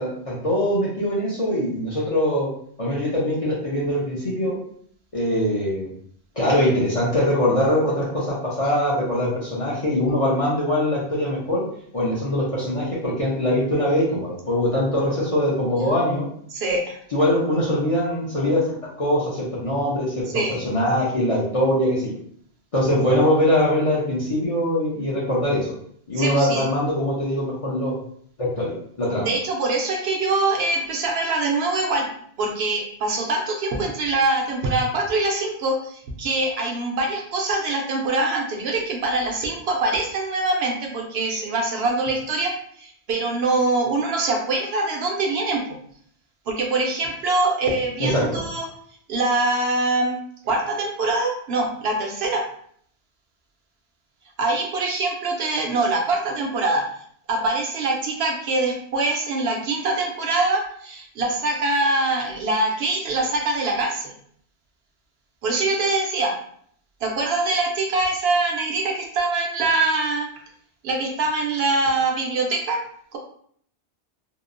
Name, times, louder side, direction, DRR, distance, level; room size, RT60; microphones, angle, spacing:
voice 1, 0.0-2.5 2.8-4.6 5.1-5.9 6.4-11.6 11.9-16.3 17.1-18.6 19.0-22.1 22.7-25.7 26.1-27.9 28.4-29.3 48.0-48.3, left 1 dB, 40° left, -6 dB, 0.6 m, -22 dB
voice 2, 16.5-17.0 20.3-20.6 26.1-26.7 29.2-32.1 32.4-42.5 42.8-45.6 46.5-48.7 49.1-50.2 50.4-52.4 54.4-56.8 57.3-64.1 65.4-66.4 67.0-70.3 70.8-72.8 73.1-73.2, right 2 dB, 70° right, 0 dB, 0.8 m, -23 dB
2.8 x 2.0 x 2.4 m, 0.63 s
omnidirectional pair, 1.1 m